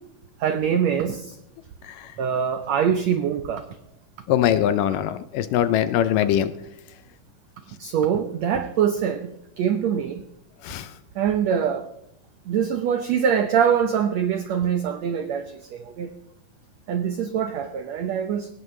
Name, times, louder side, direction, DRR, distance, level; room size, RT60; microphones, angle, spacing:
voice 1, 0.4-1.4 2.2-3.6 7.8-9.3 9.6-10.2 11.1-11.9 12.5-16.1 16.9-18.5, right 8 dB, 90° right, 8 dB, 1.5 m, -24 dB
voice 2, 4.3-6.5 10.6-10.9, left 11 dB, 80° left, 12 dB, 2.1 m, -22 dB
19.5 x 18.0 x 3.2 m, 0.80 s
omnidirectional pair, 4.2 m